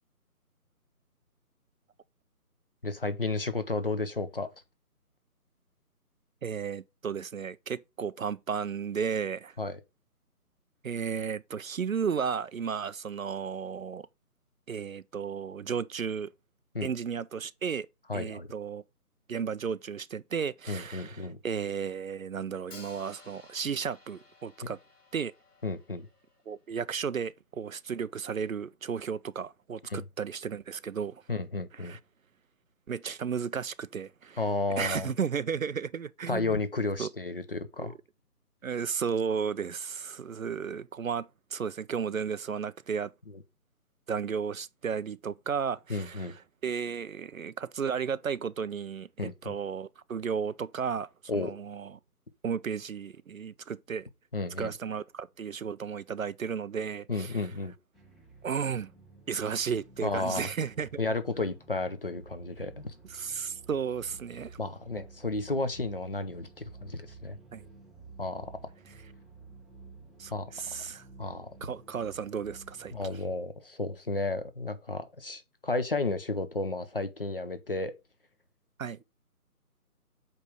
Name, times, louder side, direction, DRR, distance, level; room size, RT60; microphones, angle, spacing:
voice 1, 2.8-4.5 9.6-9.8 16.7-16.9 18.1-18.5 20.7-21.4 25.6-26.1 29.9-30.0 31.3-32.0 34.4-35.1 36.3-37.9 43.3-43.4 45.9-46.3 49.2-49.5 51.3-51.5 54.3-54.7 57.1-57.7 60.0-60.5 61.0-62.9 64.6-67.4 68.2-68.5 70.3-70.5 71.2-71.5 72.9-77.9, left 3 dB, 35° left, 0.8 m, -32 dB
voice 2, 6.4-9.6 10.8-14.1 14.7-16.3 16.8-17.9 18.1-18.8 19.3-24.8 25.1-25.3 26.5-31.2 31.7-32.0 32.9-34.4 34.8-36.6 37.0-37.1 37.8-37.9 38.6-43.1 44.1-52.0 52.4-54.1 54.6-57.5 58.4-58.9 59.3-61.0 63.0-64.6 67.5-67.6 70.2-71.1 71.6-73.1 78.8-79.0, right 6 dB, 60° right, 0.5 m, -34 dB
Hi-hat, 22.7-26.7, left 3 dB, 70° left, 3.2 m, -54 dB
sound 1, 57.9-73.4, right 4 dB, ahead, 0.6 m, -52 dB
8.3 x 3.3 x 5.1 m
figure-of-eight pair, 165°, 46 cm